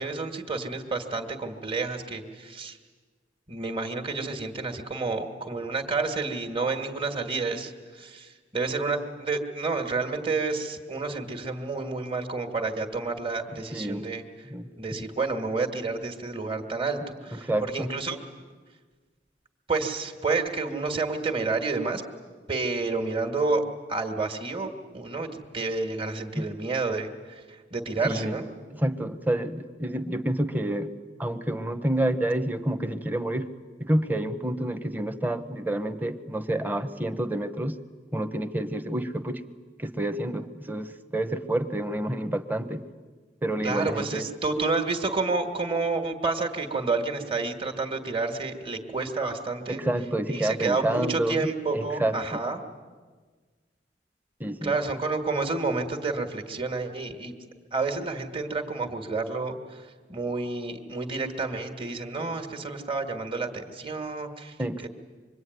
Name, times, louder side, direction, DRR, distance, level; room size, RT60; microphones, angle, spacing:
voice 1, 0.0-2.8 3.5-14.2 14.8-18.2 19.7-22.0 22.5-23.6 23.9-28.4 43.6-49.8 50.3-52.6 54.6-57.3 57.7-64.6 64.8-64.9, right 3 dB, 30° right, 5 dB, 2.0 m, -30 dB
voice 2, 13.7-14.0 14.5-15.0 17.4-17.9 26.4-26.5 28.0-28.3 28.8-30.9 31.2-33.5 33.8-37.8 38.1-39.4 39.8-42.8 43.4-44.2 49.7-51.4 51.7-52.4 54.4-54.7 64.6-64.9, right 1 dB, 10° right, 9 dB, 1.2 m, -28 dB
26.0 x 23.0 x 9.5 m, 1.4 s
head